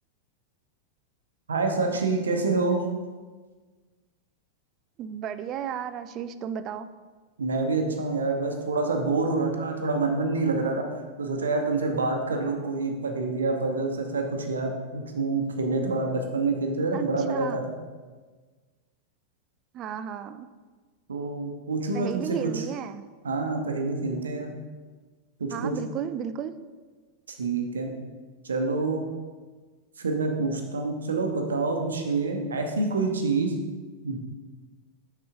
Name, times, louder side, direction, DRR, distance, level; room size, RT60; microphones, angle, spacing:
voice 1, 1.5-2.8 7.4-10.9 11.2-17.8 21.1-22.6 23.2-24.5 25.4-25.7 27.3-27.9 28.4-29.1 30.0-33.5 34.0-34.2, right 3 dB, 70° right, 3 dB, 0.9 m, -27 dB
voice 2, 5.0-6.9 16.9-17.6 19.7-20.5 21.9-23.0 25.5-26.5, right 8 dB, 35° right, 12 dB, 0.4 m, -33 dB
6.7 x 5.5 x 3.7 m, 1.4 s
figure-of-eight pair, 90°, 0 cm